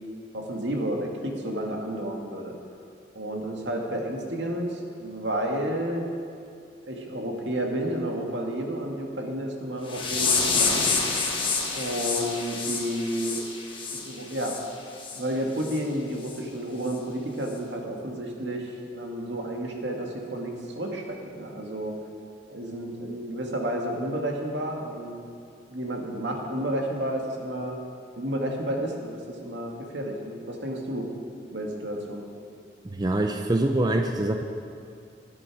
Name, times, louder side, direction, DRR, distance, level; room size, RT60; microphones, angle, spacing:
voice 1, 0.3-2.5 3.1-6.1 6.3-6.5 6.8-10.9 11.7-13.4 13.9-14.6 15.1-22.0 22.5-25.3 25.7-27.8 28.2-31.1 31.5-32.3, right 1 dB, 80° right, 1 dB, 2.0 m, -31 dB
sound 1, 9.9-14.6 15.0-15.2 15.6-15.8 16.3-16.4 16.9-17.0, left 4 dB, 30° left, 1.5 m, -28 dB
voice 2, 32.9-34.4, right 1 dB, 20° right, 5 dB, 0.6 m, -24 dB
16.5 x 11.0 x 4.8 m, 2.3 s
head